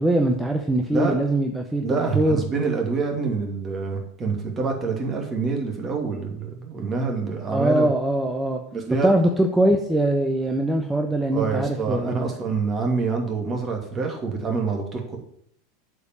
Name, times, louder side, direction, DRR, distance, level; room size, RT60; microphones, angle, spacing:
voice 1, 0.0-2.4 7.5-8.6 9.0-12.3, right 1 dB, 5° right, 3 dB, 0.9 m, -22 dB
voice 2, 1.8-7.9 8.7-9.1 11.3-15.2, right 4 dB, 30° right, 2 dB, 2.5 m, -26 dB
8.0 x 5.2 x 7.2 m, 0.68 s
figure-of-eight pair, 85°, 0 cm